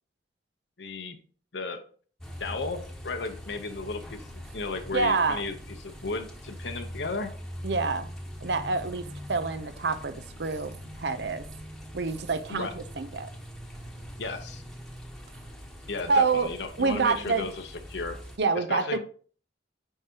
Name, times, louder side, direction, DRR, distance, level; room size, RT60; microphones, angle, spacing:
voice 1, 0.8-1.2 1.5-1.8 2.4-4.2 4.5-5.6 5.8-7.3 12.5-12.7 14.2-14.6 15.9-17.6 17.9-18.2 18.5-19.0, left 3 dB, 75° left, 5 dB, 0.9 m, -34 dB
sound 1, 2.2-18.4, equal, 5° left, 1.1 m, -42 dB
voice 2, 4.9-5.4 7.6-8.1 8.4-10.1 10.4-11.4 11.9-13.3 16.1-16.5 16.8-17.5 18.4-19.0, right 4 dB, 65° right, 11 dB, 0.7 m, -27 dB
9.1 x 4.8 x 2.9 m, 0.43 s
head